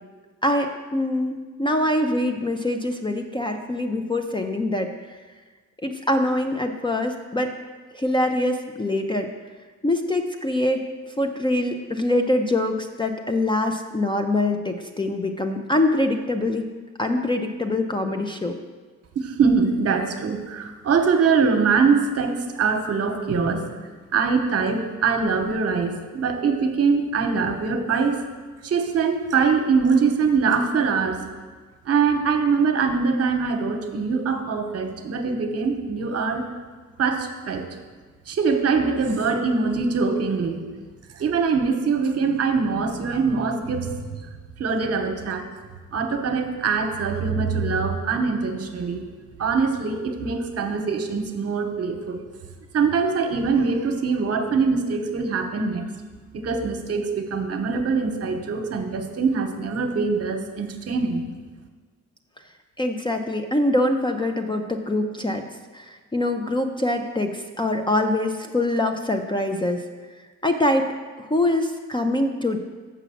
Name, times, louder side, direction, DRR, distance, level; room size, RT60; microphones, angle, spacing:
voice 1, 0.4-5.2 5.8-7.5 7.9-9.3 9.8-10.8 11.2-16.7 17.0-18.6 62.8-65.5 65.7-69.9 70.4-72.6, left 1 dB, 15° left, 5 dB, 0.4 m, -24 dB
voice 2, 19.1-23.6 24.1-28.2 28.6-31.2 31.8-36.5 37.0-37.7 38.3-40.6 41.1-44.3 44.6-45.5 45.9-49.1 49.4-52.2 52.7-55.8 56.3-61.2, right 5 dB, 55° right, 5 dB, 1.0 m, -23 dB
7.1 x 6.0 x 7.0 m, 1.4 s
cardioid pair, 135°, 30 cm